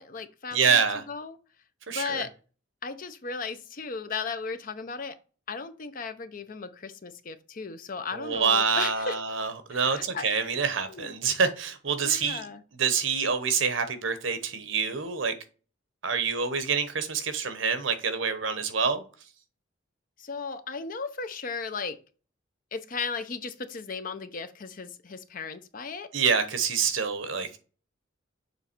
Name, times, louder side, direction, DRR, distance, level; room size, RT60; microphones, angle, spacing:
voice 1, 0.0-0.8 1.1-1.4 1.9-2.3 2.8-5.2 5.5-9.2 9.7-10.2 10.9-11.1 12.0-12.6 20.2-22.0 22.7-26.1, left 5 dB, 45° left, 0.6 m, -36 dB
voice 2, 0.5-1.0 1.9-2.2 8.1-12.5 12.8-15.3 16.0-19.0 26.1-27.6, right 6 dB, 85° right, 1.0 m, -26 dB
7.0 x 3.2 x 4.4 m
head